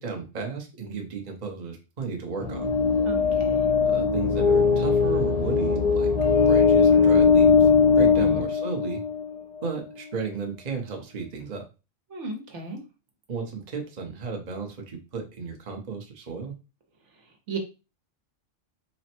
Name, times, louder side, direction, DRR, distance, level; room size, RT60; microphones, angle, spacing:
voice 1, 0.0-2.7 3.8-6.1 6.5-9.0 9.6-11.6 13.3-16.5, right 5 dB, 35° right, 2 dB, 0.8 m, -34 dB
sound 1, 2.4-9.3, left 5 dB, 40° left, 0.6 m, -20 dB
voice 2, 3.0-3.6 8.2-8.5 12.1-12.8 17.5-17.6, right 3 dB, 65° right, 2 dB, 1.2 m, -35 dB
4.1 x 2.1 x 4.3 m, 0.30 s
omnidirectional pair, 1.3 m